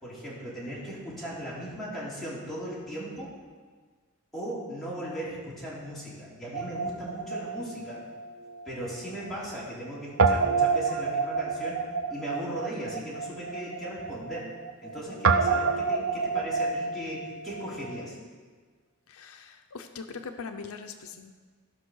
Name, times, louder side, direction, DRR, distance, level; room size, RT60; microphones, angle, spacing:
voice 1, 0.0-3.3 4.3-8.0 8.6-14.5 14.8-18.2, right 1 dB, ahead, -8 dB, 3.3 m, -38 dB
Guitar, 6.5-9.0 9.2-9.3 10.2-18.0, right 4 dB, 70° right, 0.7 m, -28 dB
voice 2, 19.1-21.3, left 5 dB, 80° left, 7 dB, 0.6 m, -41 dB
14.0 x 5.5 x 6.3 m, 1.5 s
head